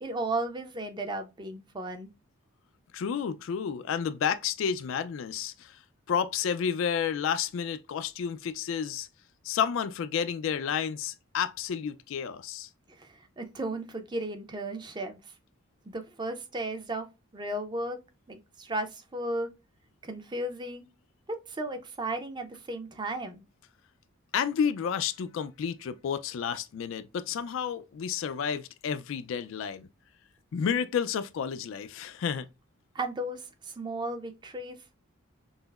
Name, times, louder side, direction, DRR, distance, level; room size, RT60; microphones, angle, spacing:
voice 1, 0.0-2.1 13.0-13.1 13.4-15.2 15.9-17.1 17.3-18.0 18.3-19.5 20.0-20.8 21.5-23.4 32.9-34.8, right 1 dB, 20° right, 0.5 m, -34 dB
voice 2, 2.9-5.8 6.1-9.1 9.4-12.7 24.3-29.9 30.5-32.5, left 7 dB, 65° left, 0.3 m, -31 dB
5.4 x 2.0 x 2.2 m
head